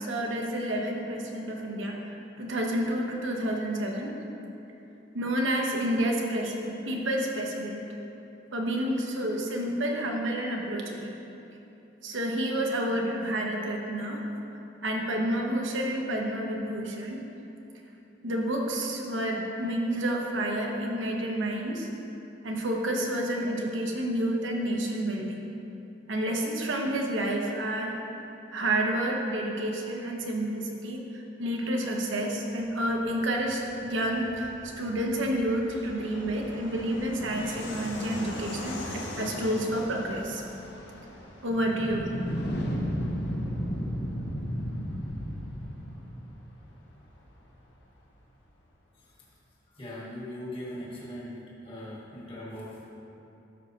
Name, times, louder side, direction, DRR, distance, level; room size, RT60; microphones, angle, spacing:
voice 1, 0.0-4.2 5.1-7.9 8.5-11.1 12.0-14.2 14.8-17.2 18.2-21.9 22.4-25.4 26.1-28.0 28.5-40.4 41.4-42.1, right 1 dB, 85° right, 0 dB, 1.1 m, -29 dB
Fixed-wing aircraft airplane, 32.5-48.7, left 1 dB, 80° left, 1.2 m, -44 dB
sound 1, 41.5-46.4, equal, 60° left, 0.8 m, -32 dB
voice 2, 49.8-51.4 51.6-52.9, left 1 dB, 30° left, -6 dB, 1.6 m, -40 dB
13.0 x 6.4 x 2.9 m, 2.9 s
head